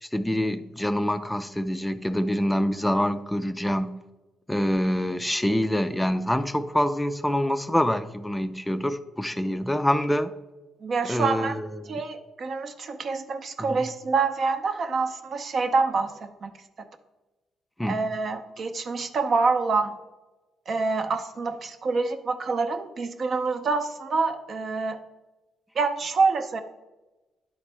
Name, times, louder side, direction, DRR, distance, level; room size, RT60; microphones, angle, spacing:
voice 1, 0.0-4.0 4.5-10.3 11.0-12.0 13.6-13.9 17.8-18.0, equal, 5° left, 10 dB, 0.4 m, -26 dB
voice 2, 10.8-11.5 11.9-16.5 17.9-19.9 20.7-25.0 25.7-26.6, right 4 dB, 50° right, 8 dB, 0.7 m, -26 dB
10.5 x 4.0 x 3.4 m, 1.1 s
cardioid pair, 90°, 0 cm